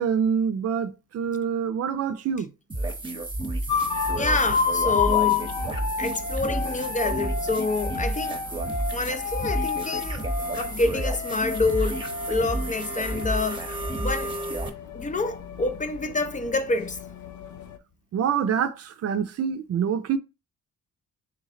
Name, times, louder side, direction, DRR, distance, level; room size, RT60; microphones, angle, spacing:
voice 1, 0.0-2.5 18.1-20.2, right 7 dB, 55° right, 0.5 m, -26 dB
sound 1, 2.7-14.7, right 2 dB, 15° right, 0.8 m, -31 dB
sound 2, 3.7-17.8, left 6 dB, 70° left, 0.6 m, -31 dB
voice 2, 4.1-5.5 6.0-8.4 8.9-10.2 10.5-14.3 14.9-17.0, left 3 dB, 25° left, 0.5 m, -27 dB
3.3 x 3.2 x 3.7 m
cardioid pair, 90°, 30 cm